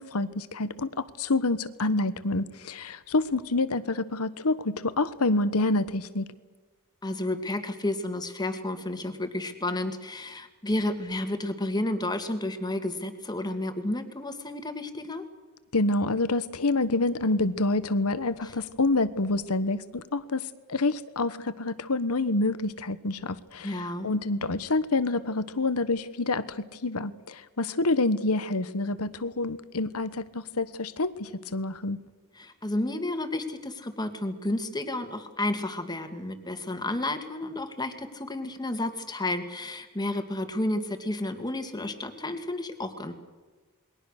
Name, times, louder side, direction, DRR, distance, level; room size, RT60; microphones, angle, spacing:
voice 1, 0.0-6.2 15.7-32.0, left 2 dB, 75° left, 14 dB, 1.2 m, -27 dB
voice 2, 7.0-15.2 18.4-18.5 23.6-24.1 32.3-43.1, left 1 dB, 20° left, 7 dB, 2.2 m, -31 dB
28.0 x 22.0 x 6.6 m, 1.3 s
head